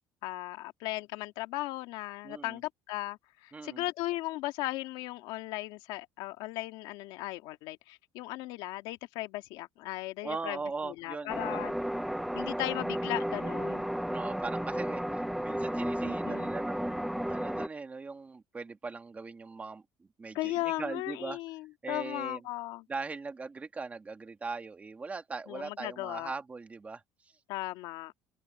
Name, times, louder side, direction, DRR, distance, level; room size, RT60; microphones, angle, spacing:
voice 1, 0.2-10.6 10.8-11.7 12.4-13.9 16.0-16.5 20.3-22.8 25.5-26.3 27.5-28.1, left 18 dB, 85° left, 1.9 m, -37 dB
voice 2, 2.2-2.6 3.5-3.8 10.2-11.8 14.0-21.4 21.8-22.5 22.9-27.3, right 4 dB, 20° right, 2.1 m, -40 dB
sound 1, 11.3-17.7, equal, ahead, 0.6 m, -33 dB
cardioid pair, 150°, 8 cm